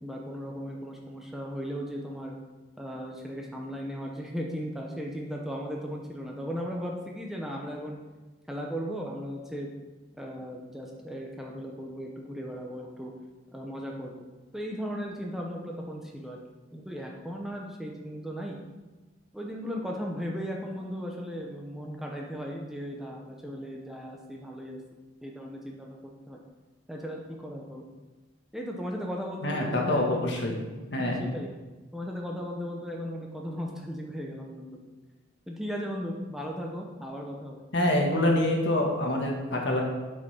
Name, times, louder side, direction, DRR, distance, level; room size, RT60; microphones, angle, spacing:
voice 1, 0.0-2.3 2.8-8.0 8.5-9.7 10.1-13.1 13.5-14.2 14.5-16.4 16.7-18.6 19.3-24.8 25.2-26.0 26.3-26.4 26.9-27.9 28.5-30.3 31.0-31.5 31.9-34.8 35.5-37.6, equal, ahead, -1 dB, 0.8 m, -36 dB
voice 2, 29.4-30.6 30.9-31.3 37.7-39.8, left 1 dB, 65° left, 0 dB, 1.7 m, -26 dB
8.0 x 5.4 x 5.7 m, 1.2 s
head